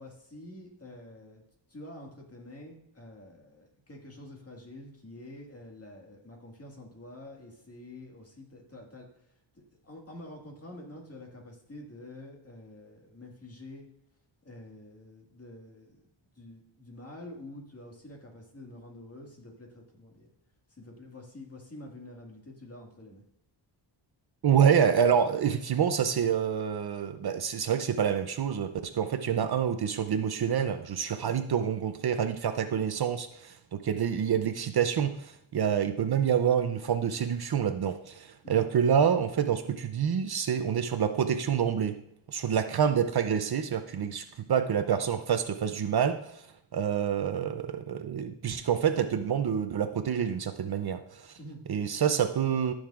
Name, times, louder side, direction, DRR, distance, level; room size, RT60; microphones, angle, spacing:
voice 1, 0.0-1.4 1.7-9.4 9.8-13.8 14.4-16.0 16.3-20.3 20.7-23.2 38.4-38.7 51.4-51.6, left 1 dB, 30° left, 0 dB, 1.9 m, -47 dB
voice 2, 24.4-42.0 42.3-46.4 46.7-51.4 51.7-52.7, right 8 dB, 55° right, 9 dB, 0.6 m, -27 dB
13.5 x 6.4 x 2.5 m, 0.75 s
wide cardioid pair, 105°, 46 cm